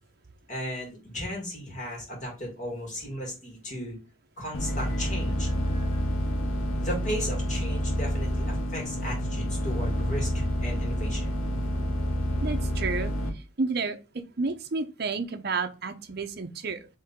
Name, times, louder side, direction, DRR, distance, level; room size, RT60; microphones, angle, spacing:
voice 1, 0.5-4.0 4.4-6.0 6.8-11.4, equal, 35° left, -1 dB, 2.1 m, -35 dB
sound 1, 4.5-13.3, equal, 85° left, 1.0 m, -28 dB
voice 2, 12.4-13.1 13.6-14.0 14.4-16.9, right 4 dB, 50° right, 7 dB, 0.6 m, -30 dB
4.4 x 3.3 x 3.6 m, 0.30 s
head